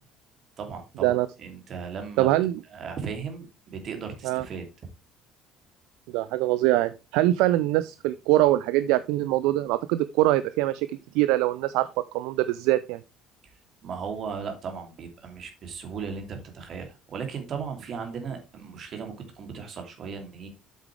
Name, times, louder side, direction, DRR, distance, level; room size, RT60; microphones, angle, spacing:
voice 1, 0.6-2.3 2.7-4.7 13.8-20.5, right 6 dB, 45° right, 5 dB, 2.9 m, -36 dB
voice 2, 2.2-2.6 4.2-4.4 6.1-13.0, right 15 dB, 65° right, 15 dB, 0.4 m, -23 dB
8.4 x 8.0 x 3.3 m, 0.27 s
figure-of-eight pair, 55°, 0 cm